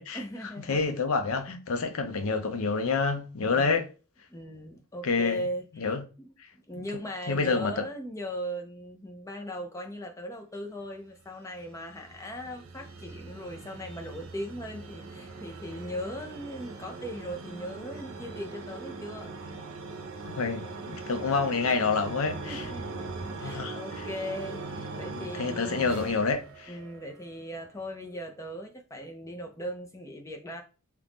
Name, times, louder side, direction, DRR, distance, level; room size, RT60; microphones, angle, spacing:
voice 1, 0.1-0.8 4.3-19.3 22.5-25.9 26.7-30.6, equal, 15° left, 0.5 m, -39 dB
voice 2, 0.7-3.9 5.0-5.4 5.8-6.0 6.4-6.5 6.8-6.9 7.3-7.9 20.2-22.7 23.4-23.8 25.1-26.7, left 4 dB, 75° left, 0.6 m, -28 dB
sound 1, 11.2-27.3, right 3 dB, 70° right, 0.6 m, -41 dB
2.9 x 2.5 x 3.5 m
head